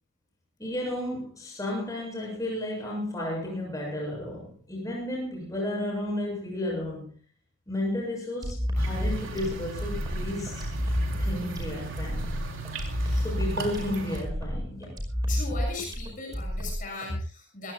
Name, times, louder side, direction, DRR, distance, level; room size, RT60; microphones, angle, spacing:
voice 1, 0.6-7.1 7.7-10.7 11.2-12.3 13.2-15.0, left 1 dB, 15° left, -1 dB, 7.3 m, -33 dB
sound 1, 8.4-17.1, equal, 20° right, 5.1 m, -30 dB
sound 2, 8.8-14.2, right 3 dB, 75° right, 3.3 m, -37 dB
voice 2, 15.3-17.7, left 3 dB, 40° left, 1 dB, 6.6 m, -38 dB
26.0 x 16.0 x 2.3 m, 0.35 s
head